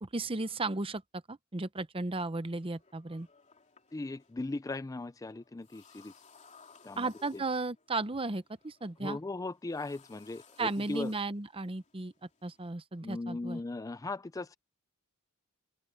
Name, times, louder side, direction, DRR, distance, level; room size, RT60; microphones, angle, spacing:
voice 1, 0.0-1.0 1.3-3.3 7.0-9.2 10.6-12.1 12.4-13.6, right 3 dB, 25° right, 0.8 m, -35 dB
sound 1, 2.5-12.7, left 5 dB, 30° left, 3.2 m, -62 dB
voice 2, 3.9-6.1 6.8-7.4 9.0-11.1 13.0-14.6, left 2 dB, 15° left, 0.4 m, -38 dB
open air
head